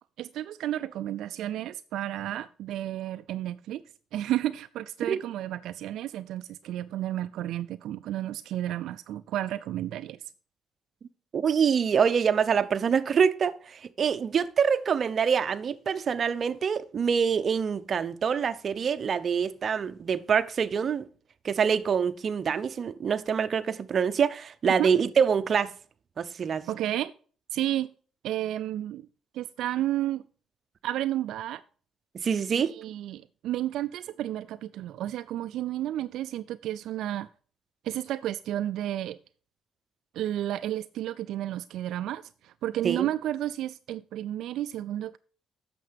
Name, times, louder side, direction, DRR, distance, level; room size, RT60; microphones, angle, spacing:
voice 1, 0.2-3.8 4.1-10.2 24.8-24.9 26.7-27.1 27.5-27.9 28.2-29.1 29.3-30.2 30.8-31.6 32.5-37.3 37.8-39.2 40.1-45.2, right 13 dB, 80° right, 0.3 m, -32 dB
voice 2, 11.3-21.1 21.4-25.7 26.2-26.7 32.1-32.7 42.8-43.1, right 7 dB, 50° right, 0.7 m, -25 dB
9.2 x 6.7 x 5.2 m
cardioid pair, 90°, 0 cm